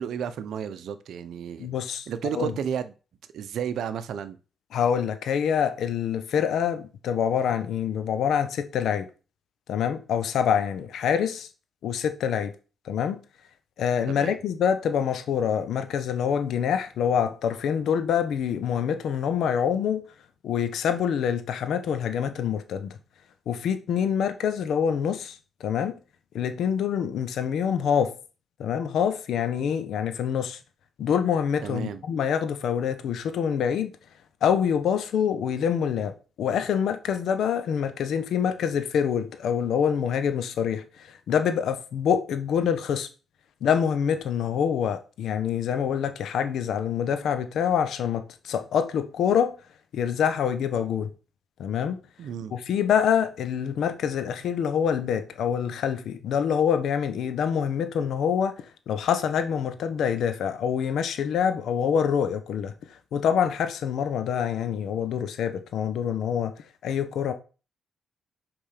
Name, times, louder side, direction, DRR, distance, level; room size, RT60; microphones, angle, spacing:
voice 1, 0.0-1.7 2.1-2.9 3.3-4.4 14.1-14.4 31.6-32.0 52.2-52.5, right 8 dB, 75° right, 0.9 m, -32 dB
voice 2, 1.6-2.1 2.3-2.5 4.7-9.1 9.7-11.5 11.8-12.5 12.8-13.2 13.8-20.0 20.4-23.0 23.5-26.0 26.3-28.1 28.6-30.6 31.0-33.9 34.4-43.1 43.6-49.5 49.9-51.1 51.6-52.0 52.5-62.7 63.1-66.5 66.8-67.3, left 8 dB, 75° left, 1.3 m, -26 dB
6.1 x 5.4 x 6.8 m
cardioid pair, 80°, 0 cm